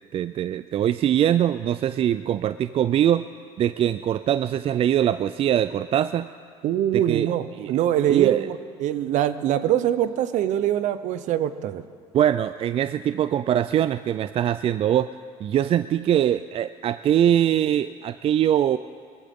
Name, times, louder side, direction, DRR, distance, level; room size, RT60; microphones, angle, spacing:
voice 1, 0.1-3.2 3.6-6.3 6.9-7.3 7.6-7.7 8.1-8.5 12.1-15.1 15.4-18.8, right 10 dB, 45° right, 13 dB, 0.4 m, -22 dB
voice 2, 6.6-11.8, right 11 dB, 65° right, 13 dB, 0.8 m, -24 dB
21.0 x 14.5 x 3.7 m, 2.2 s
supercardioid pair, 75°, 14 cm